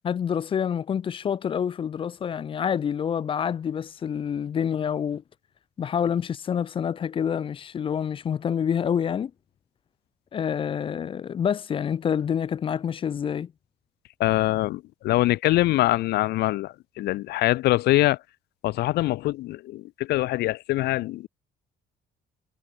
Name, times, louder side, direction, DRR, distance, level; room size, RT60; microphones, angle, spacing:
voice 1, 0.0-5.2 5.8-9.3 10.3-13.5, left 8 dB, 30° left, 0.4 m, -27 dB
voice 2, 14.2-18.2 18.6-21.3, left 17 dB, 75° left, 0.8 m, -24 dB
cardioid pair, 110°, 17 cm